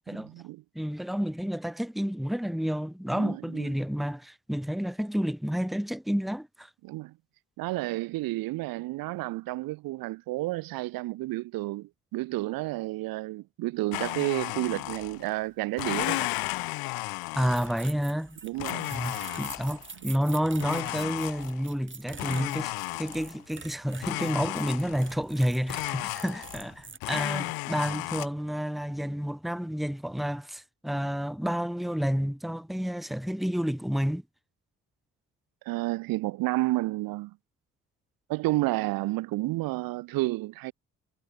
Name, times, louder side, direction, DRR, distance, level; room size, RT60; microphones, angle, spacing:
voice 1, 0.1-0.6 3.2-3.7 6.8-7.1 7.6-16.3 18.4-19.0 35.7-37.4 38.3-40.7, right 19 dB, 60° right, 0.6 m, -31 dB
voice 2, 0.8-6.7 17.4-18.4 18.9-34.2, equal, ahead, 1.7 m, -30 dB
Domestic sounds home sounds, 13.9-15.3 15.7-17.9 18.6-19.9 20.6-21.7 22.2-23.4 24.0-25.1 25.7-26.7 27.0-28.3, left 24 dB, 60° left, 0.6 m, -34 dB
sound 1, 17.5-27.0, right 4 dB, 30° right, 2.9 m, -46 dB
figure-of-eight pair, 45°, 41 cm